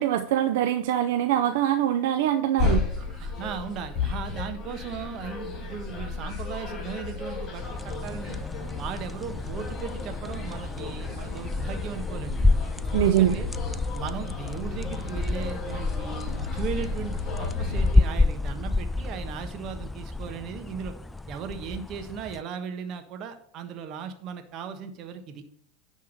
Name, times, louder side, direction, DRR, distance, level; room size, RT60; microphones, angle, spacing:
voice 1, 0.0-2.8 12.9-13.4, right 11 dB, 75° right, 7 dB, 0.5 m, -23 dB
sound 1, 2.6-17.9, left 4 dB, 40° left, 4.1 m, -33 dB
voice 2, 3.0-8.4 8.7-12.5 13.0-13.5 13.9-20.9 21.3-25.4, right 7 dB, 50° right, 7 dB, 1.3 m, -37 dB
sound 2, 7.6-22.4, left 2 dB, 10° left, 0.3 m, -29 dB
10.5 x 3.6 x 6.5 m, 0.62 s
hypercardioid pair, 100°, 0 cm